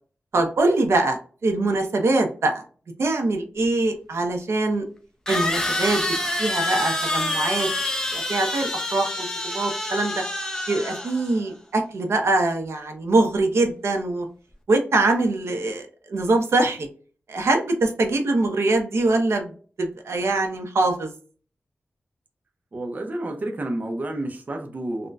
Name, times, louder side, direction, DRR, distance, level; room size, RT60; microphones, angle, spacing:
voice 1, 0.3-2.6 3.0-4.9 5.3-6.0 6.4-7.7 8.1-10.1 10.7-14.3 14.7-16.9 17.3-19.5 19.8-21.1, right 2 dB, 85° right, 4 dB, 0.6 m, -23 dB
sound 1, 3.6-3.7 5.3-11.4, left 1 dB, 15° left, 0.5 m, -27 dB
voice 2, 22.7-25.1, right 1 dB, 40° right, 3 dB, 0.5 m, -30 dB
3.8 x 2.1 x 2.3 m, 0.40 s
wide cardioid pair, 125°, 4 cm